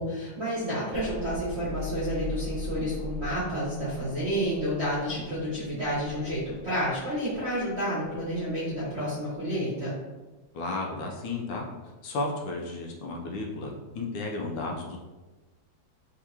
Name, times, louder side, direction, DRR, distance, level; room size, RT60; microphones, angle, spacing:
voice 1, 0.0-9.9, equal, 40° right, -10 dB, 1.2 m, -30 dB
Mechanical fan, 0.9-8.9, left 1 dB, 10° right, 1.0 m, -40 dB
voice 2, 10.5-11.7 12.0-15.0, left 3 dB, 70° left, 1 dB, 1.3 m, -33 dB
3.7 x 3.6 x 2.8 m, 1.2 s
omnidirectional pair, 2.2 m